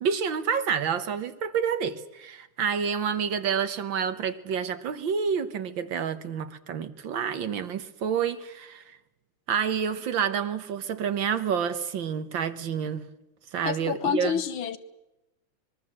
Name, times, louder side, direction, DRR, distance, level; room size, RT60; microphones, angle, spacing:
voice 1, 0.0-9.0 9.5-13.1 13.5-14.4, right 7 dB, 65° right, 11 dB, 1.9 m, -28 dB
voice 2, 13.7-14.8, left 7 dB, 75° left, 12 dB, 2.1 m, -28 dB
24.5 x 22.5 x 7.7 m, 0.96 s
omnidirectional pair, 2.3 m